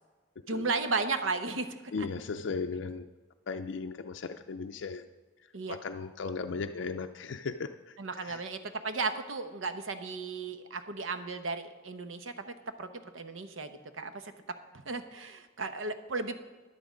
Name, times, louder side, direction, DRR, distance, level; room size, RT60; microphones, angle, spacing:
voice 1, 0.5-1.7 2.0-2.1 5.5-5.8 8.0-13.7 14.0-14.3 14.9-16.4, right 4 dB, 90° right, 9 dB, 0.9 m, -35 dB
voice 2, 1.9-3.1 3.5-5.0 5.7-8.0 8.2-8.4, left 4 dB, 65° left, 6 dB, 0.4 m, -36 dB
10.5 x 9.4 x 5.1 m, 1.3 s
head